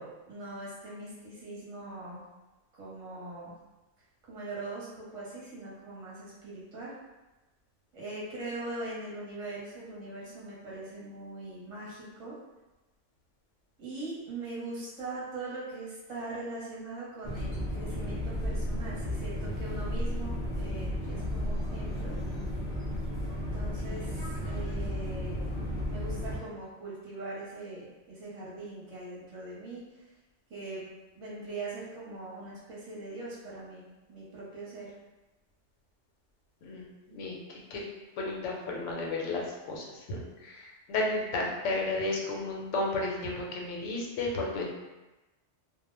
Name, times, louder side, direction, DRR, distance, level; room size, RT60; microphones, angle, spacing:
voice 1, 0.0-2.2 2.7-3.5 4.2-6.9 7.9-12.3 13.8-22.1 23.3-25.4 25.8-30.1 30.5-30.9 31.1-33.8 34.1-35.0, right 2 dB, 35° right, -7 dB, 0.7 m, -41 dB
sound 1, 17.2-26.4, equal, 30° left, 0.7 m, -33 dB
voice 2, 36.6-37.8 38.2-44.7, left 2 dB, 75° left, -1 dB, 0.9 m, -33 dB
2.1 x 2.1 x 3.1 m, 1.1 s
omnidirectional pair, 1.3 m